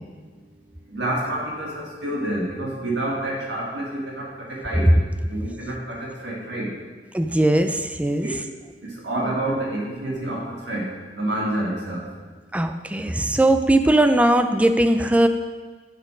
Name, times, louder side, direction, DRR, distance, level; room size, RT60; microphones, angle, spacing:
voice 1, 0.9-4.9 5.3-6.0 6.2-6.7 8.2-8.4 9.0-10.9 11.2-12.0, right 1 dB, 80° right, -4 dB, 1.9 m, -28 dB
voice 2, 7.1-8.3 12.5-15.3, right 1 dB, 10° right, 8 dB, 0.4 m, -19 dB
7.4 x 6.3 x 5.0 m, 1.4 s
head